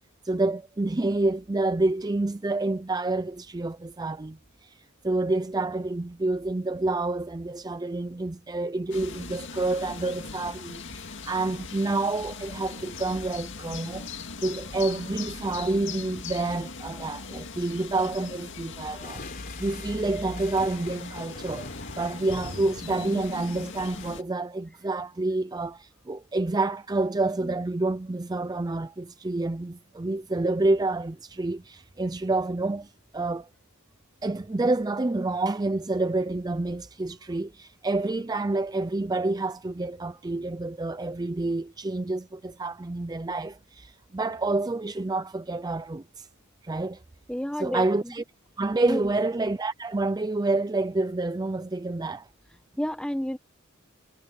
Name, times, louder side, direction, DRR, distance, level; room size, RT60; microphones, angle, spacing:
voice 1, 0.2-4.8 5.0-14.1 14.4-19.2 19.6-33.5 34.2-46.3 46.6-47.0 47.6-48.2 48.6-52.3, right 2 dB, 20° right, 0.4 m, -28 dB
sound 1, 8.9-24.2, left 4 dB, 60° left, 2.1 m, -40 dB
sound 2, 19.0-24.1, left 3 dB, 40° left, 3.8 m, -44 dB
voice 2, 47.3-48.1 48.8-49.1 52.8-53.4, equal, 5° left, 1.1 m, -30 dB
head